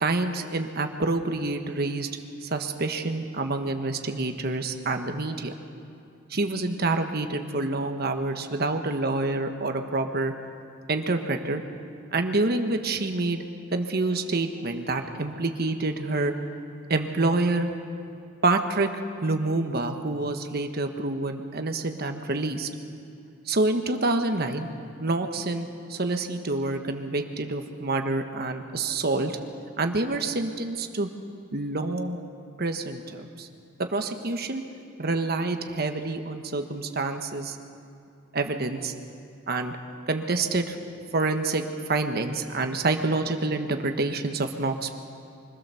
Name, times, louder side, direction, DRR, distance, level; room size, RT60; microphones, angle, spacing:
voice 1, 0.0-2.1 2.4-5.5 6.3-10.3 10.9-11.6 12.1-13.4 13.7-16.3 16.9-17.7 18.4-18.9 19.2-22.7 23.5-24.7 25.0-29.4 29.8-31.1 31.5-32.2 32.6-33.5 33.8-34.6 35.0-37.6 38.3-38.9 39.5-39.8 40.1-40.7 41.1-44.9, right 2 dB, 55° right, 6 dB, 1.3 m, -27 dB
24.5 x 15.5 x 7.0 m, 2.5 s
head